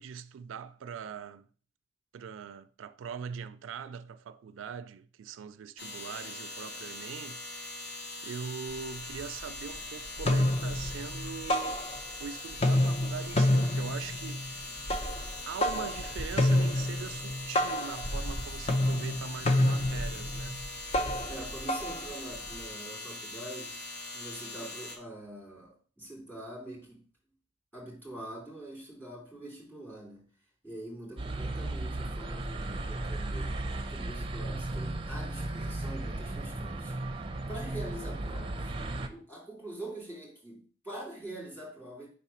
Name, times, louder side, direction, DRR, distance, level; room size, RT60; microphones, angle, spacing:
voice 1, 0.0-1.5 2.1-7.4 8.2-14.7 15.5-20.7, right 6 dB, 85° right, 0.4 m, -42 dB
sound 1, 5.8-25.0, left 2 dB, 55° left, 1.5 m, -42 dB
sound 2, 8.7-8.8 9.1-9.8 10.1-12.3 12.5-22.7, left 1 dB, 30° left, 0.6 m, -29 dB
voice 2, 21.3-23.7 24.1-27.0 27.7-30.2 30.6-33.5 33.9-36.9 37.5-38.7 39.1-42.1, right 1 dB, 10° left, 2.7 m, -44 dB
sound 3, 31.2-39.1, right 2 dB, 30° right, 0.6 m, -35 dB
5.2 x 4.1 x 5.6 m
head